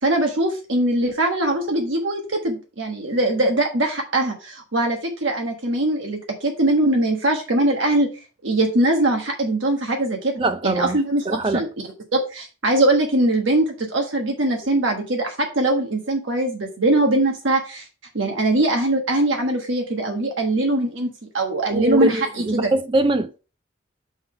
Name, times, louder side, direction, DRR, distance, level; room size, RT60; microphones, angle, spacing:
voice 1, 0.0-8.1 8.4-11.7 12.1-17.8 18.1-22.7, right 2 dB, 80° right, 1.3 m, -21 dB
voice 2, 10.4-11.0 11.3-11.6 21.7-23.4, right 1 dB, 25° right, 0.4 m, -22 dB
7.1 x 3.8 x 4.4 m
head